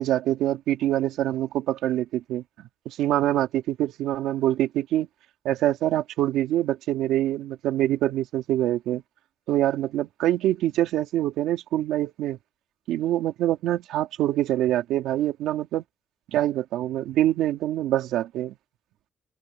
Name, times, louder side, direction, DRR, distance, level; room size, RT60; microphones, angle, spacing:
voice 1, 0.0-5.1 5.4-9.0 9.5-12.4 12.9-15.8 16.3-18.6, right 13 dB, 90° right, 3.3 m, -25 dB
cardioid pair, 90°, 0 cm